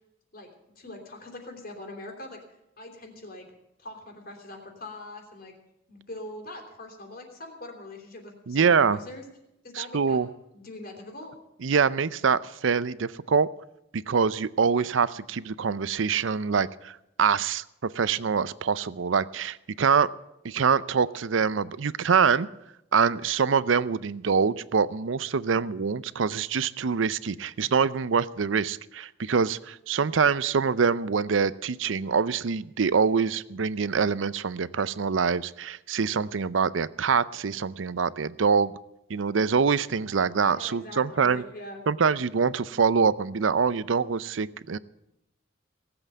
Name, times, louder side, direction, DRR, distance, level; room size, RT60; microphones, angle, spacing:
voice 1, 0.7-2.4 2.8-3.5 3.8-5.5 5.9-9.2 9.6-10.2 10.5-11.3 39.8-40.2 40.5-41.8, left 2 dB, 50° left, 3 dB, 3.3 m, -42 dB
voice 2, 8.5-9.0 9.7-10.3 11.6-13.5 13.9-20.1 20.4-22.5 22.9-38.7 39.1-41.4 41.9-44.8, right 5 dB, 70° right, 17 dB, 0.5 m, -25 dB
18.0 x 8.0 x 9.1 m, 0.86 s
head